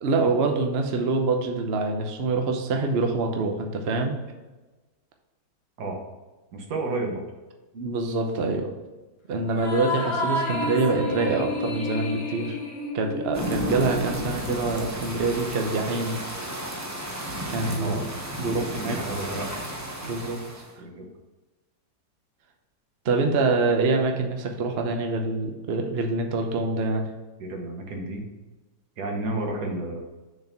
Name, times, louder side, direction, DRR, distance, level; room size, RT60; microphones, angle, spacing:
voice 1, 0.0-4.2 7.7-8.7 9.3-12.6 12.9-16.2 17.5-18.0 18.4-19.0 20.0-20.6 23.0-27.1, right 3 dB, 50° right, 3 dB, 0.8 m, -25 dB
voice 2, 6.5-7.3 17.8-18.0 18.6-19.5 20.8-21.1 27.4-28.3 29.0-30.0, right 2 dB, 70° right, 2 dB, 1.7 m, -31 dB
sound 1, 9.5-14.2, left 2 dB, 45° left, 1.2 m, -30 dB
sound 2, 13.3-20.7, right 1 dB, 15° right, 0.6 m, -33 dB
6.5 x 4.5 x 5.8 m, 1.2 s
omnidirectional pair, 1.8 m